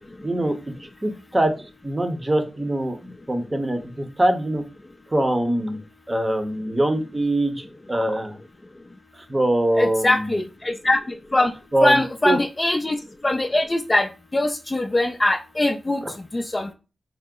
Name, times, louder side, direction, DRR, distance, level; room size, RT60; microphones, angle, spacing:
voice 1, 0.2-4.6 5.1-5.8 6.1-8.4 9.1-10.3 11.7-12.4 16.0-16.1, right 1 dB, 25° right, 5 dB, 0.7 m, -23 dB
voice 2, 9.8-11.0 11.3-11.5 11.8-13.0 13.2-16.0 16.3-16.7, left 1 dB, 25° left, 5 dB, 0.4 m, -22 dB
4.6 x 2.0 x 3.7 m, 0.32 s
cardioid pair, 80°, 0 cm